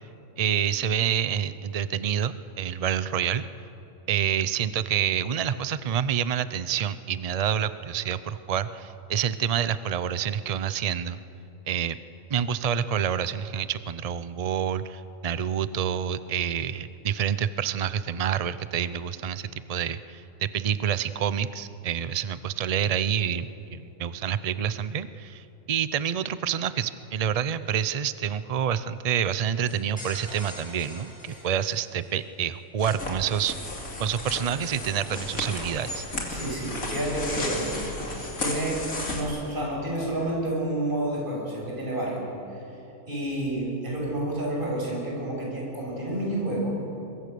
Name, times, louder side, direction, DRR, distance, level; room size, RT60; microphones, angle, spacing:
voice 1, 0.4-3.4 4.1-11.2 11.7-12.0 12.3-33.7 34.0-36.1, right 8 dB, 75° right, 14 dB, 0.3 m, -28 dB
sound 1, 29.7-32.2, left 1 dB, 5° left, 7.2 m, -43 dB
sound 2, 32.8-39.2, left 2 dB, 70° left, 3.2 m, -33 dB
voice 2, 36.3-37.8 38.1-42.2 43.1-46.8, right 1 dB, 35° right, -3 dB, 6.7 m, -30 dB
23.5 x 22.5 x 6.8 m, 2.9 s
omnidirectional pair, 1.5 m